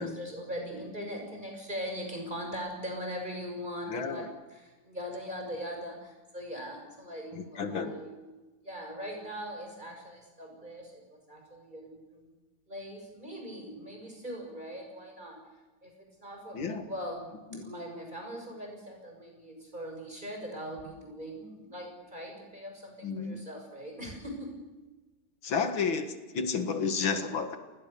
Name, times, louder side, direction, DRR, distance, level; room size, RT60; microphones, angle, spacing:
voice 1, 0.0-8.3 8.6-12.3 12.7-15.4 15.8-17.3 17.6-24.6, equal, 20° right, 2 dB, 6.8 m, -41 dB
voice 2, 3.9-4.3 7.3-7.9 16.5-16.9 17.5-17.6 23.0-23.4 25.4-27.6, left 5 dB, 85° left, 8 dB, 2.5 m, -31 dB
28.5 x 21.0 x 6.9 m, 1.2 s
omnidirectional pair, 2.1 m